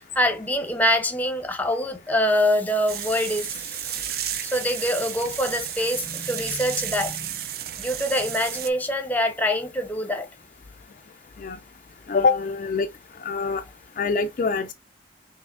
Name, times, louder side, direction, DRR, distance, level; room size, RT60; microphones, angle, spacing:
voice 1, 0.1-7.4 7.8-10.3, left 1 dB, 10° left, 0.7 m, -25 dB
sound 1, 2.9-8.7, right 11 dB, 55° right, 0.4 m, -33 dB
voice 2, 12.1-12.9 13.2-13.6 14.0-14.7, left 4 dB, 45° left, 0.3 m, -24 dB
5.4 x 3.1 x 2.6 m
head